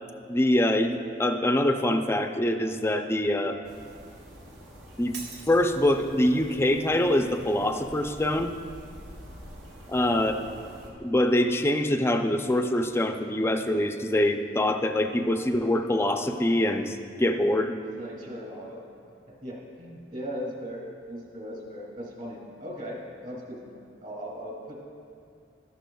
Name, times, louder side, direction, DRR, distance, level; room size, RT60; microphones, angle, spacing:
voice 1, 0.3-3.6 5.0-5.2 5.5-8.5 9.9-10.3 11.0-17.7, left 1 dB, 15° left, 6 dB, 0.4 m, -24 dB
sound 1, 3.6-10.9, equal, 85° right, 1.7 m, -47 dB
Shatter, 5.1-6.1, right 4 dB, 65° right, 1.2 m, -43 dB
voice 2, 9.9-10.3 17.8-18.8 19.4-20.8 21.1-24.8, equal, 45° right, -2 dB, 2.3 m, -38 dB
13.0 x 11.5 x 2.3 m, 2.4 s
head